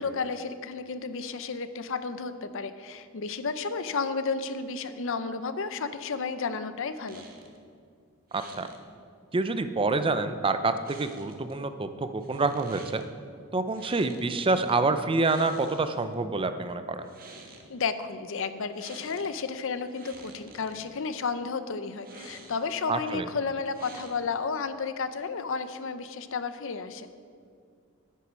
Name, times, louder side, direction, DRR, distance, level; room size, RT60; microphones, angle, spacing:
voice 1, 0.0-7.2 17.7-27.1, left 4 dB, 65° left, 11 dB, 0.7 m, -32 dB
sound 1, 7.1-7.6 8.3-8.8 10.8-11.5 12.2-13.1 13.7-14.8 15.1-16.1 16.9-17.7 18.7-19.4 19.7-20.9 21.9-22.8 23.7-24.4, right 3 dB, 45° right, 1.4 m, -49 dB
voice 2, 8.3-8.7 9.3-13.0 13.5-17.1 22.9-23.3, right 3 dB, 25° right, 10 dB, 0.5 m, -27 dB
10.0 x 9.3 x 6.2 m, 2.2 s
head